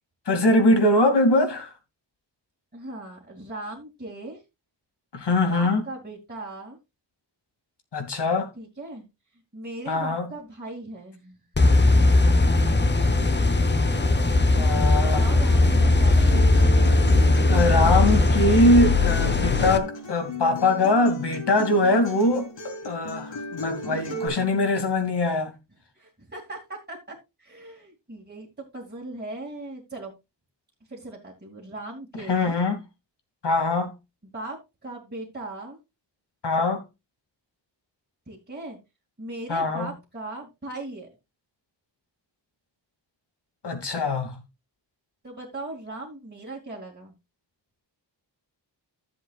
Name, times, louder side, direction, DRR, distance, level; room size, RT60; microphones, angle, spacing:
voice 1, 0.3-1.7 5.1-5.9 7.9-8.5 9.9-10.3 14.5-15.3 17.5-25.5 32.3-32.8 33.4-33.9 36.4-36.8 39.5-39.9 43.6-44.4, left 2 dB, 65° left, 2.5 m, -22 dB
voice 2, 2.7-4.4 5.4-6.8 8.6-9.1 9.5-11.5 15.0-16.4 23.9-24.4 25.2-25.4 26.0-30.1 30.9-32.6 34.3-35.8 38.3-38.8 39.2-41.1 45.2-47.1, right 2 dB, 25° right, 2.6 m, -38 dB
sound 1, 11.6-19.8, left 2 dB, 25° left, 0.8 m, -19 dB
Acoustic guitar, 16.3-24.3, equal, 85° left, 4.1 m, -36 dB
14.0 x 7.6 x 2.4 m
wide cardioid pair, 140°, 43 cm